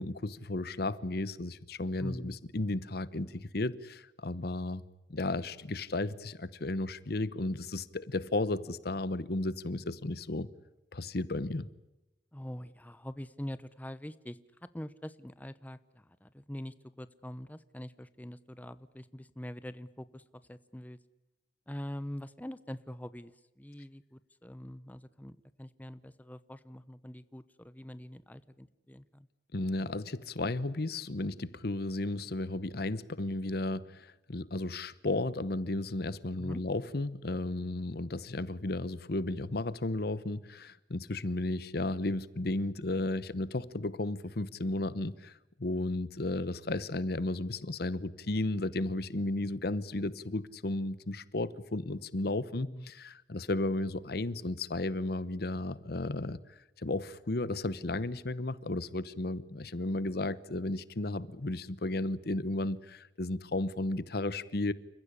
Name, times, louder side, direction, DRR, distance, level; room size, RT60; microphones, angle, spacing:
voice 1, 0.0-4.8 5.1-10.5 10.9-11.7 29.5-45.3 45.6-56.4 56.8-64.7, left 2 dB, 60° left, 1.0 m, -34 dB
voice 2, 2.0-2.4 12.3-20.2 20.5-21.0 21.7-29.3 36.4-36.6 52.6-52.9, equal, 10° left, 0.8 m, -44 dB
29.0 x 15.5 x 9.9 m
head